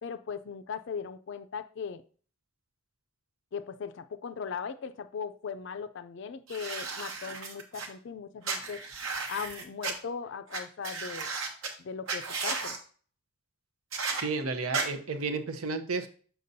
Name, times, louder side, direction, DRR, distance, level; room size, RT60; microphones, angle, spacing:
voice 1, 0.0-2.0 3.5-8.8 9.3-11.3 11.8-12.8, left 6 dB, 60° left, 12 dB, 0.4 m, -38 dB
sound 1, 6.5-7.9 8.4-9.9 10.5-10.6 10.8-11.7 12.1-12.8 13.9-14.2 14.7-14.8, right 4 dB, 70° right, 1.1 m, -34 dB
voice 2, 14.1-16.1, right 4 dB, 85° right, 9 dB, 0.8 m, -32 dB
6.7 x 5.9 x 2.7 m, 0.42 s
head